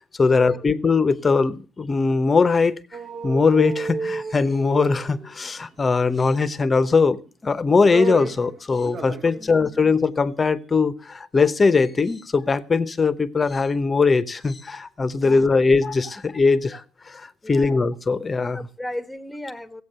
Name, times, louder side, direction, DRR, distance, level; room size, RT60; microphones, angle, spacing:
voice 1, 0.2-2.7 3.2-18.7, left 4 dB, 25° left, 0.9 m, -20 dB
sound 1, 2.9-5.5 6.7-7.3 7.6-8.5 8.8-9.3 9.7-9.8, right 4 dB, 45° right, 1.2 m, -31 dB
voice 2, 9.2-9.8 15.2-15.6 17.4-17.8 18.5-19.8, left 1 dB, 5° left, 1.1 m, -36 dB
16.0 x 8.3 x 6.7 m
cardioid pair, 130°, 0 cm